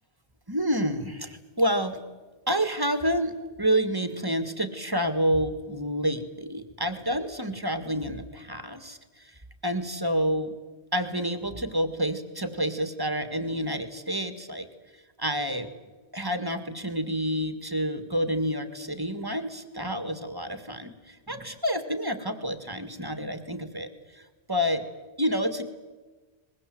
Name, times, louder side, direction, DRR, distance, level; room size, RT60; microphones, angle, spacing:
voice 1, 0.5-2.0 2.5-3.3 3.6-9.3 9.6-10.5 10.9-14.7 15.2-15.7 16.1-24.2 24.5-24.8 25.2-25.6, equal, 20° right, 8 dB, 1.8 m, -28 dB
23.5 x 21.5 x 7.8 m, 1.3 s
omnidirectional pair, 1.2 m